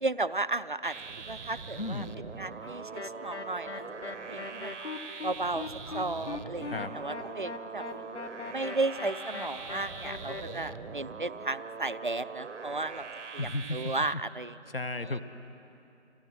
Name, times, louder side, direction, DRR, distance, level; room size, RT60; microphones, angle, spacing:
voice 1, 0.0-1.0 1.3-2.1 2.4-4.8 5.2-5.7 5.9-8.0 8.5-13.1 13.3-14.6 15.0-15.2, right 2 dB, 45° right, 14 dB, 0.4 m, -34 dB
sound 1, 0.8-14.1, right 5 dB, 80° right, 0.8 m, -43 dB
voice 2, 1.8-2.1 6.7-6.9 13.4-13.9 14.7-15.2, left 2 dB, 50° left, 10 dB, 0.9 m, -34 dB
sound 2, 2.0-2.2 2.6-2.9 3.2-3.9 4.3-4.5 4.8-5.0 5.3-5.6 5.8-6.1 6.6-6.9 7.2-7.4 7.8-8.1 8.7-10.7, left 1 dB, 20° left, 1.3 m, -48 dB
sound 3, 3.0-10.4, left 4 dB, 75° left, 1.7 m, -40 dB
27.0 x 17.0 x 6.2 m, 2.8 s
figure-of-eight pair, 175°, 36 cm